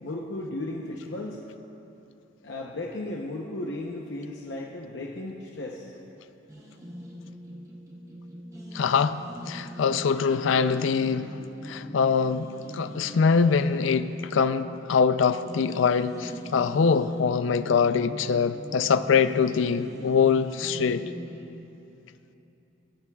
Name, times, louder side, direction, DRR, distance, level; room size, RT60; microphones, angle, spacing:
voice 1, 0.0-1.4 2.4-5.9, left 2 dB, 70° left, -2 dB, 0.8 m, -35 dB
sound 1, 6.5-21.5, equal, 15° right, 0.9 m, -42 dB
voice 2, 8.7-9.2 9.5-11.3 11.6-12.5 12.7-21.0, left 5 dB, 90° left, 13 dB, 0.4 m, -23 dB
20.5 x 12.0 x 2.3 m, 2.9 s
head